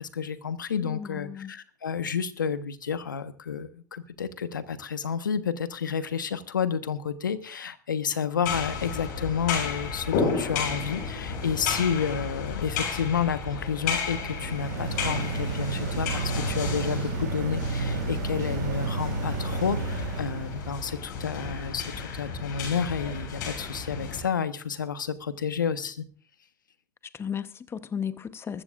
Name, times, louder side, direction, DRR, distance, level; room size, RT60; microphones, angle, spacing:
voice 1, 0.0-26.0, left 7 dB, 90° left, 1.2 m, -30 dB
voice 2, 0.8-1.5 27.1-28.6, left 7 dB, 25° left, 0.9 m, -35 dB
sound 1, 8.4-24.2, left 5 dB, 65° left, 7.5 m, -33 dB
sound 2, 14.0-20.6, right 3 dB, 75° right, 4.4 m, -31 dB
21.5 x 14.5 x 2.5 m
hypercardioid pair, 85°, 10 cm